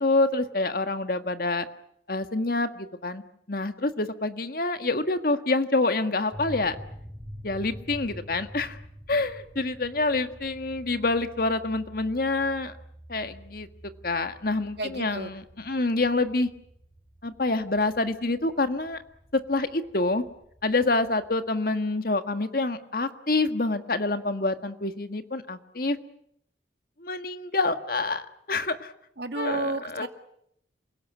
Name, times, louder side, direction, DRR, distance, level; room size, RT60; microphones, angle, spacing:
voice 1, 0.0-1.7 2.1-3.2 3.5-6.7 7.4-8.8 9.1-12.7 13.1-13.7 14.0-16.5 17.2-19.0 19.3-20.2 20.6-26.0 27.0-28.2 28.5-28.9 29.3-30.1, left 2 dB, 55° left, 9 dB, 1.7 m, -27 dB
sound 1, 6.3-21.3, equal, 10° left, 7.9 m, -47 dB
voice 2, 14.8-15.3 29.2-30.1, right 3 dB, 70° right, 7 dB, 2.1 m, -31 dB
28.0 x 17.5 x 9.7 m, 0.73 s
head